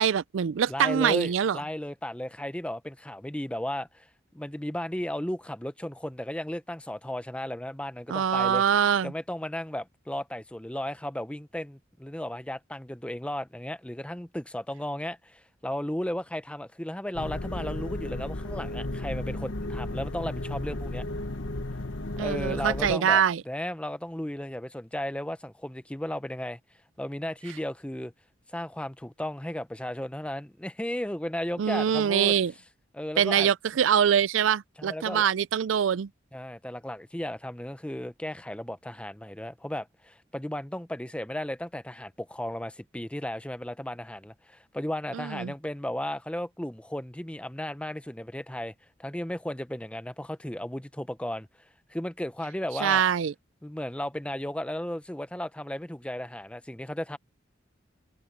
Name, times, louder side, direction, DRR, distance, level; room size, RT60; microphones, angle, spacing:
voice 1, 0.0-1.6 8.1-9.1 22.2-23.4 31.6-32.5 33.2-36.1 45.1-45.5 52.8-53.3, right 8 dB, 85° right, 0.4 m, -24 dB
voice 2, 0.7-4.1 4.3-8.6 9.0-21.0 22.2-26.6 27.0-28.1 28.5-32.3 32.9-33.5 34.8-35.3 36.3-48.7 49.0-51.5 51.9-53.0 53.6-57.2, left 1 dB, 5° left, 0.6 m, -35 dB
sound 1, 17.1-23.0, left 1 dB, 80° left, 1.3 m, -34 dB
head